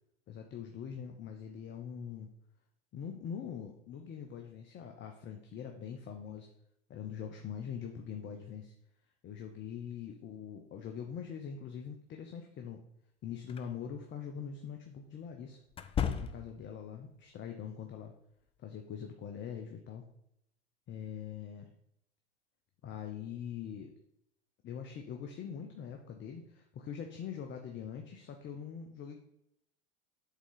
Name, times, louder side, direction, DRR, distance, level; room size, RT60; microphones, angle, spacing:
voice 1, 0.3-2.3 2.9-6.5 6.9-8.7 9.2-12.8 13.2-15.6 16.2-18.1 18.6-20.0 20.9-21.7 22.8-23.9 24.6-29.2, left 8 dB, 35° left, 4 dB, 0.8 m, -43 dB
sound 1, 13.5-13.7 15.7-16.7, left 7 dB, 20° left, 0.4 m, -34 dB
8.2 x 3.7 x 3.9 m, 0.76 s
hypercardioid pair, 90°, 34 cm